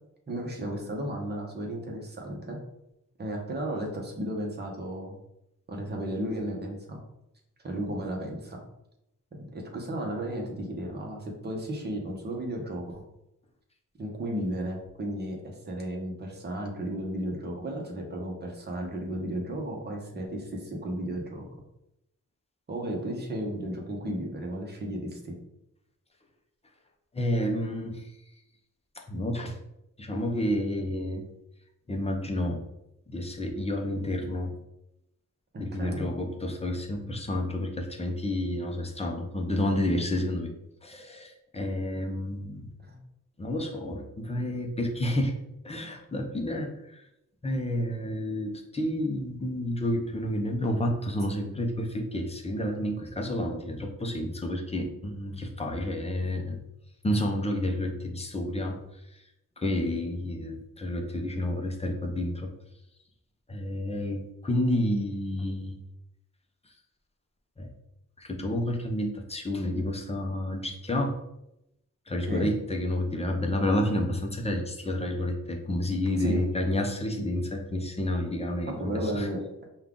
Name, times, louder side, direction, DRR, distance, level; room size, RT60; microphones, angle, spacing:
voice 1, 0.3-2.6 3.2-5.2 5.7-7.0 7.6-8.6 9.3-13.0 14.0-21.5 22.7-25.3 35.5-36.0 42.8-43.0 72.3-72.5 76.2-76.5 78.7-79.4, right 1 dB, 35° right, 0 dB, 0.9 m, -34 dB
voice 2, 27.1-28.2 28.9-29.6 30.0-31.3 31.9-32.6 33.1-34.5 35.6-40.5 40.8-42.7 43.4-45.3 45.6-47.0 47.4-56.6 57.0-59.2 59.6-62.5 63.5-65.8 67.6-67.7 68.2-71.2 72.1-79.3, left 1 dB, 20° left, 2 dB, 0.6 m, -30 dB
5.3 x 2.3 x 3.7 m, 0.85 s
wide cardioid pair, 130°, 31 cm